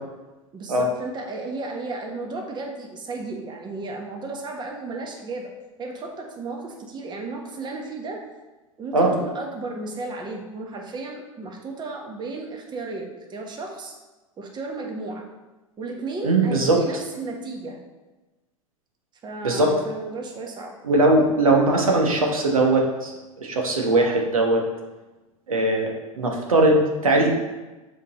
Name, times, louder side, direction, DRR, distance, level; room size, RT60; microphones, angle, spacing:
voice 1, 0.5-5.5 5.8-8.3 8.8-14.0 14.4-15.3 15.8-17.8 19.2-20.7, right 3 dB, 25° right, 1 dB, 1.2 m, -34 dB
voice 2, 16.2-16.8 19.4-19.7 20.8-23.1 23.4-24.6 25.5-25.9 26.2-27.3, right 2 dB, 85° right, 0 dB, 1.1 m, -19 dB
7.3 x 3.9 x 4.0 m, 1.1 s
figure-of-eight pair, 90°, 17 cm